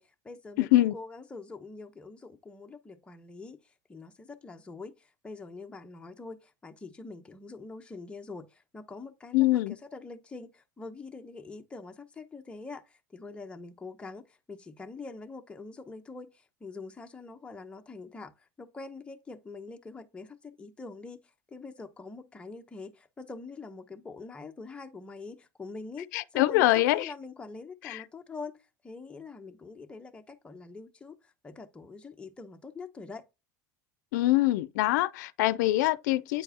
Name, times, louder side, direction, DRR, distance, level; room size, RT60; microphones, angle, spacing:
voice 1, 0.0-3.6 3.9-18.3 18.6-21.2 21.5-28.6 28.8-31.2 31.4-33.2, left 3 dB, 10° left, 0.8 m, -44 dB
voice 2, 0.6-0.9 9.3-9.7 26.1-27.1 27.8-28.0 34.1-36.4, left 17 dB, 85° left, 0.4 m, -24 dB
9.1 x 4.6 x 2.8 m
supercardioid pair, 145°, 9 cm